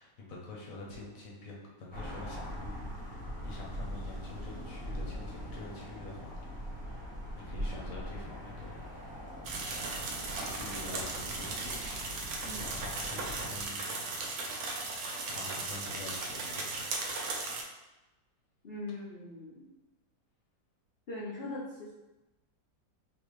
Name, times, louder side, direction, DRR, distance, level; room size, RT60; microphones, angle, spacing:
voice 1, 0.0-6.5 6.8-8.9 10.3-14.0 15.2-17.2, left 2 dB, 55° left, -2 dB, 1.1 m, -46 dB
sound 1, 1.9-13.7, equal, 10° left, 0.6 m, -42 dB
sound 2, 9.4-17.6, right 3 dB, 65° right, 0.9 m, -37 dB
voice 2, 18.6-19.7 21.1-21.9, left 2 dB, 75° left, -8 dB, 0.5 m, -41 dB
4.3 x 2.7 x 3.1 m, 1.0 s
omnidirectional pair, 2.0 m